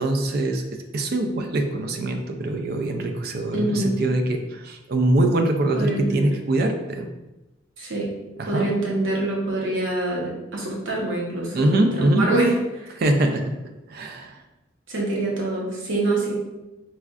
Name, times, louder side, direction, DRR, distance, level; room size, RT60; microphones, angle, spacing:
voice 1, 0.0-7.1 8.4-8.7 11.5-12.2 13.0-13.6 13.9-14.4, right 1 dB, 50° right, 5 dB, 0.3 m, -23 dB
voice 2, 3.5-3.9 5.7-6.3 7.8-8.1 8.5-13.0 14.9-16.3, right 2 dB, 70° right, -3 dB, 0.9 m, -25 dB
4.2 x 2.4 x 2.4 m, 1.0 s
head